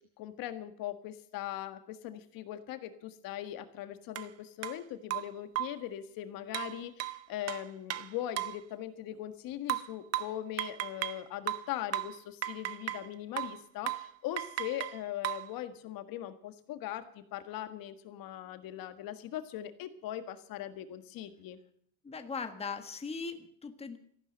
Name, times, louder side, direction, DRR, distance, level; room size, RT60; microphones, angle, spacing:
voice 1, 0.2-21.6, left 12 dB, 50° left, 9 dB, 1.7 m, -40 dB
sound 1, 4.2-4.3 4.6-4.8 5.1-5.9 6.5-8.6 9.7-11.2 11.5-13.1 13.4-13.6 13.9-14.1 14.4-15.5, right 15 dB, 35° right, 0.7 m, -36 dB
voice 2, 22.0-24.0, left 5 dB, 15° left, 7 dB, 1.4 m, -39 dB
14.5 x 11.5 x 8.0 m, 0.63 s
cardioid pair, 155°, 44 cm